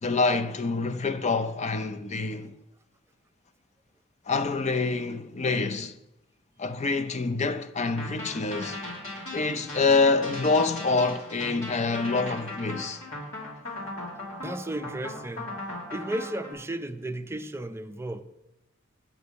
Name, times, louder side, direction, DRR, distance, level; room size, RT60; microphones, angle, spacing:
voice 1, 0.0-2.5 4.3-6.0 6.6-8.8 9.3-13.0, left 3 dB, 35° left, 0.5 m, -26 dB
sound 1, 8.0-16.5, left 2 dB, 70° left, 2.9 m, -38 dB
voice 2, 14.4-15.6 15.9-18.2, right 1 dB, 15° right, 0.5 m, -34 dB
8.2 x 4.7 x 6.8 m
head